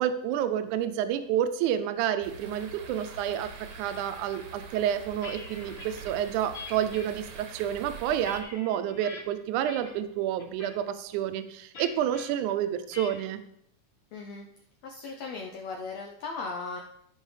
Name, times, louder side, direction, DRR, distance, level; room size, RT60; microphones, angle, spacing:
voice 1, 0.0-13.4, right 10 dB, 80° right, 11 dB, 2.0 m, -29 dB
sound 1, 2.2-8.4, right 4 dB, 65° right, 1.7 m, -45 dB
sound 2, 4.8-6.0 6.5-7.1 7.7-9.2 9.7-10.1 10.4-10.8 11.7-12.3 12.9-13.3, left 4 dB, 40° left, 2.7 m, -44 dB
voice 2, 14.1-14.5 14.8-16.8, left 4 dB, 75° left, 0 dB, 1.6 m, -37 dB
14.0 x 5.4 x 3.3 m, 0.72 s
omnidirectional pair, 3.7 m